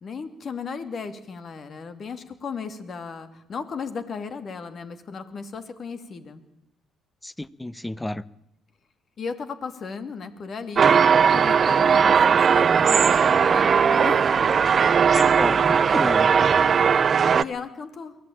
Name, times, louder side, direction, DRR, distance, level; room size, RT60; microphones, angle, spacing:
voice 1, 0.0-6.4 9.2-10.9 11.3-14.4 16.5-18.2, left 5 dB, 50° left, 2.8 m, -35 dB
voice 2, 7.2-8.2 15.1-16.3, left 1 dB, 10° left, 1.0 m, -31 dB
sound 1, 10.8-17.4, right 6 dB, 45° right, 0.9 m, -18 dB
23.0 x 16.5 x 8.9 m
hypercardioid pair, 55°, 0 cm